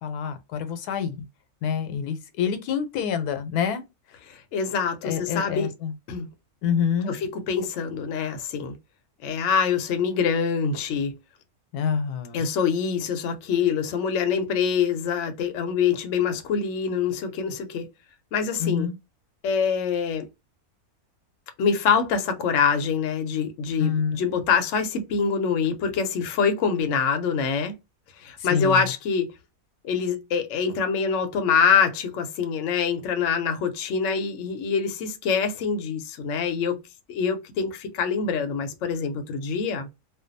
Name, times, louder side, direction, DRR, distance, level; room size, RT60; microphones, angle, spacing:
voice 1, 0.0-1.2 1.6-3.8 5.0-5.9 6.6-7.1 11.7-12.5 18.6-18.9 23.8-24.2 28.4-28.9, left 7 dB, 90° left, 1.1 m, -27 dB
voice 2, 4.3-5.7 6.1-6.3 7.1-8.7 9.2-11.1 12.3-17.9 18.3-18.9 19.4-20.3 21.6-27.7 28.2-29.3 29.8-36.8 37.1-39.9, left 6 dB, 65° left, 0.8 m, -25 dB
2.5 x 2.2 x 2.5 m
omnidirectional pair, 1.6 m